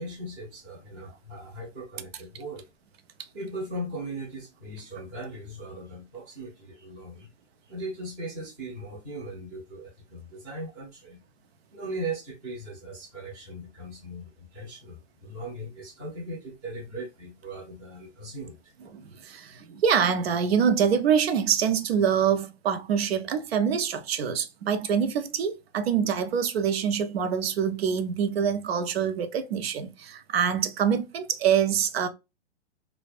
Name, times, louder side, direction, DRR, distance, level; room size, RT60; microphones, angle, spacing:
voice 1, 0.0-2.7 3.3-7.3 7.6-11.2 11.7-18.7, right 1 dB, 10° right, 0.6 m, -38 dB
voice 2, 18.9-32.1, right 7 dB, 60° right, 0.5 m, -25 dB
2.5 x 2.1 x 2.3 m
hypercardioid pair, 160°, 35 cm